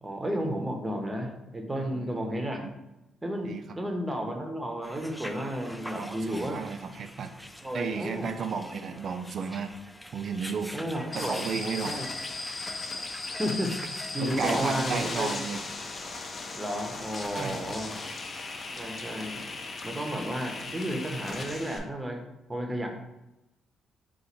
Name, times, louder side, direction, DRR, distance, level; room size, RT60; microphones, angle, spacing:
voice 1, 0.0-2.6 3.2-3.5 3.8-6.6 7.6-8.3 10.7-11.4 11.8-12.0 13.3-13.8 14.1-15.3 16.5-17.9 18.8-19.5 19.8-22.2 22.5-22.9, equal, 15° right, 2 dB, 0.9 m, -32 dB
voice 2, 1.8-2.2 2.6-2.7 3.4-3.8 6.0-7.3 7.7-9.7 10.1-10.7 11.1-12.2 14.2-15.6 17.4-17.6, right 5 dB, 55° right, 8 dB, 0.4 m, -33 dB
sound 1, 4.8-15.2, left 1 dB, 5° left, 0.3 m, -44 dB
sound 2, 11.1-21.8, left 3 dB, 40° left, 0.6 m, -37 dB
3.9 x 2.5 x 4.3 m, 0.94 s
cardioid pair, 90°, 0 cm